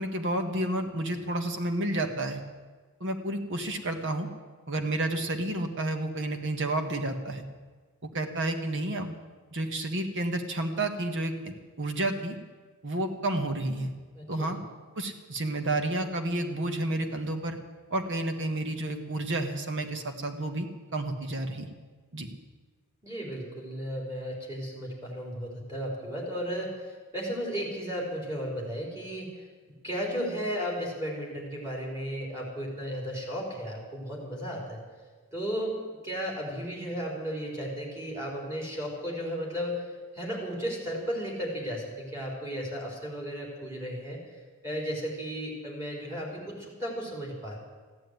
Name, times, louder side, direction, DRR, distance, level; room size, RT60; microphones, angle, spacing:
voice 1, 0.0-2.4 3.0-4.3 4.7-7.4 8.1-9.2 9.5-12.4 12.8-13.9 14.3-14.6 14.9-17.6 17.9-21.7 22.1-22.3, right 1 dB, 55° right, 6 dB, 1.6 m, -30 dB
voice 2, 14.1-14.5 23.0-29.5 29.8-34.8 35.3-35.8 36.0-39.8 40.1-44.2 44.6-47.6, equal, 15° right, -2 dB, 4.0 m, -34 dB
14.5 x 10.5 x 9.3 m, 1.4 s
head